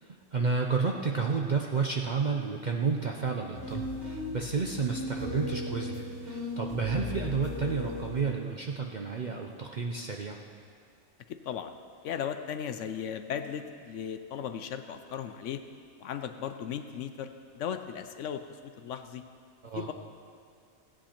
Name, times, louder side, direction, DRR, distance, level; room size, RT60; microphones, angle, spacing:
voice 1, 0.0-10.4 19.6-19.9, right 5 dB, 50° right, 1 dB, 0.6 m, -31 dB
sound 1, 3.5-8.2, left 1 dB, 20° right, 2.8 m, -36 dB
voice 2, 11.3-11.7 12.0-15.6 16.0-19.2 19.7-19.9, left 8 dB, 70° left, 8 dB, 0.9 m, -36 dB
15.5 x 8.8 x 4.4 m, 2.3 s
omnidirectional pair, 1.4 m